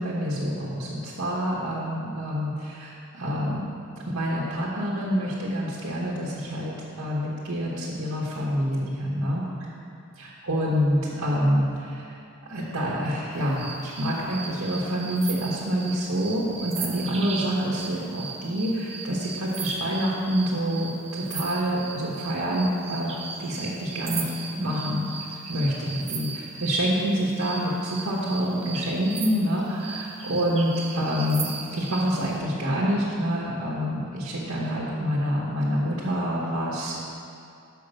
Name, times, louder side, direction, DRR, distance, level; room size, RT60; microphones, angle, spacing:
voice 1, 0.0-9.4 10.2-12.2 12.5-23.1 23.4-25.1 25.5-37.0, equal, 90° right, -5 dB, 1.2 m, -27 dB
sound 1, 13.6-26.8 27.4-32.1, right 5 dB, 30° right, 0.6 m, -37 dB
6.3 x 5.3 x 6.4 m, 2.5 s
head